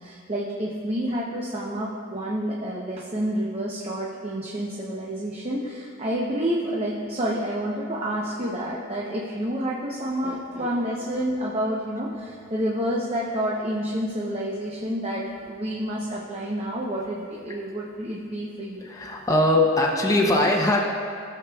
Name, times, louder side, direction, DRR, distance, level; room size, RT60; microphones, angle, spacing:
voice 1, 0.0-18.9, equal, 30° right, -4 dB, 0.7 m, -29 dB
sound 1, 5.4-6.4 8.4-9.4, left 4 dB, 65° left, 1.2 m, -47 dB
voice 2, 18.8-20.8, left 1 dB, 15° left, -1 dB, 0.6 m, -21 dB
17.0 x 6.7 x 2.3 m, 2.3 s
head